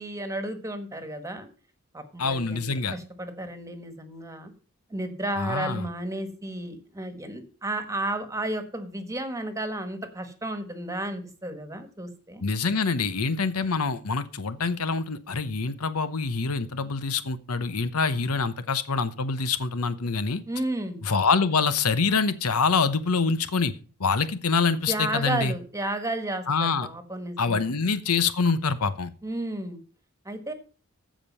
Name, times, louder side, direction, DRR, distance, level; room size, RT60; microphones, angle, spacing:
voice 1, 0.0-1.5 1.9-4.5 4.9-12.4 20.5-21.0 24.9-27.7 29.2-29.8 30.2-30.5, right 1 dB, 15° right, 8 dB, 1.5 m, -33 dB
voice 2, 2.2-3.0 5.4-5.9 12.4-20.4 21.0-23.7 24.0-25.5 26.5-26.9 27.4-29.1, left 4 dB, 85° left, 13 dB, 0.9 m, -25 dB
15.0 x 5.2 x 5.4 m, 0.37 s
head